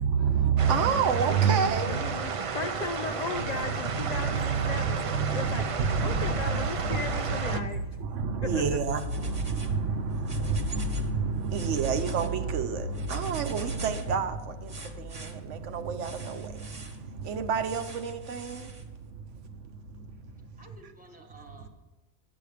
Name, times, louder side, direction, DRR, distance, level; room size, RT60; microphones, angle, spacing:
voice 1, 0.0-2.2 3.4-20.5 21.6-21.7, right 5 dB, 75° right, 1.1 m, -29 dB
sound 1, 0.6-7.6, right 5 dB, 60° right, 0.3 m, -33 dB
voice 2, 1.9-5.0 5.3-5.7 6.0-7.8 8.4-8.8, left 5 dB, 75° left, 0.3 m, -36 dB
sound 2, 8.7-9.8 10.1-11.1 11.4-12.3 12.9-14.1 14.7-15.3 16.0-17.0 17.6-18.8, right 2 dB, 30° right, 1.1 m, -45 dB
voice 3, 19.9-21.7, right 2 dB, 5° right, 1.3 m, -53 dB
9.4 x 7.1 x 4.9 m
omnidirectional pair, 1.2 m